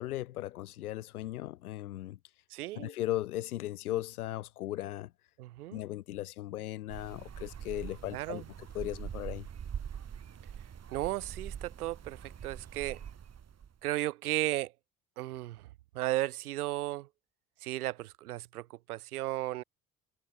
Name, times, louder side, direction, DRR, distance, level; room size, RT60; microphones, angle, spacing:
voice 1, 0.0-2.2 2.7-5.1 5.7-8.4 8.7-9.5, left 14 dB, 80° left, 1.9 m, -37 dB
voice 2, 2.5-2.9 5.4-5.8 8.1-8.5 10.9-13.0 13.8-14.7 15.2-15.6 15.9-17.1 17.6-19.6, right 16 dB, 80° right, 0.7 m, -35 dB
sound 1, 6.9-13.7, right 8 dB, 35° right, 2.0 m, -43 dB
figure-of-eight pair, 50°, 44 cm